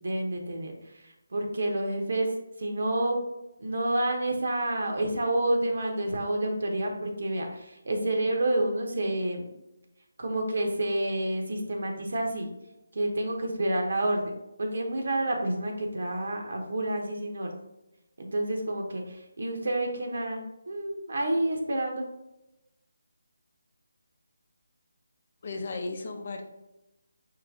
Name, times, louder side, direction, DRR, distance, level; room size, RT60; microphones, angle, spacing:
voice 1, 0.0-2.3 2.6-3.2 3.6-9.5 10.2-12.5 12.9-17.5 18.2-22.1, right 1 dB, 60° right, 2 dB, 0.9 m, -29 dB
voice 2, 25.4-26.4, left 3 dB, 45° left, 4 dB, 0.7 m, -35 dB
4.9 x 3.1 x 3.5 m, 0.92 s
figure-of-eight pair, 155°, 0 cm